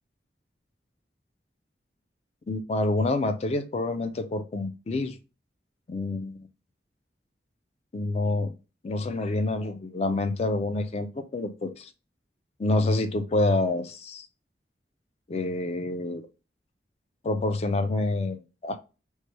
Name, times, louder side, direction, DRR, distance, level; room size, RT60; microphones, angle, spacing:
voice 1, 2.5-5.2 5.9-6.5 7.9-8.5 8.8-11.9 12.6-14.3 15.3-16.3 17.2-18.8, left 2 dB, 35° left, 8 dB, 0.4 m, -27 dB
3.0 x 2.2 x 3.0 m, 0.31 s
head